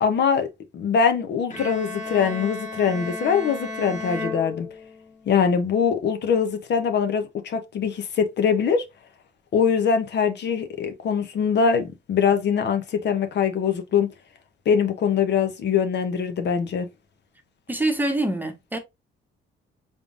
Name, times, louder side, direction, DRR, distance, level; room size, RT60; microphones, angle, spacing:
voice 1, 0.0-4.7 5.3-8.8 9.5-14.1 14.7-16.9, left 6 dB, 60° left, 0.7 m, -23 dB
Bowed string instrument, 1.5-5.2, left 2 dB, 40° left, 1.4 m, -34 dB
voice 2, 17.7-18.8, right 1 dB, 10° right, 0.8 m, -25 dB
3.7 x 3.6 x 2.4 m
cardioid pair, 90°, 20 cm